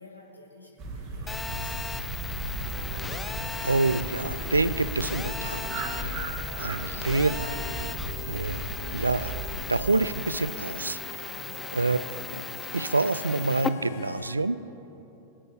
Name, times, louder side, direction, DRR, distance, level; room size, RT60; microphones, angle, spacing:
voice 1, 0.0-1.9 11.2-11.7, left 2 dB, 85° left, -3 dB, 2.5 m, -51 dB
sound 1, 0.8-9.9, right 2 dB, 30° right, 1.7 m, -36 dB
Telephone, 1.3-13.7, left 4 dB, 15° left, 0.5 m, -37 dB
sound 2, 2.6-14.4, left 4 dB, 45° left, 1.1 m, -43 dB
voice 2, 3.6-6.2 6.6-7.9 8.3-8.6 8.9-9.3 9.7-11.3 11.7-12.0 12.3-12.4 12.7-14.6, right 3 dB, 80° right, 15 dB, 0.4 m, -27 dB
24.5 x 8.7 x 3.4 m, 3.0 s
figure-of-eight pair, 90°, 0 cm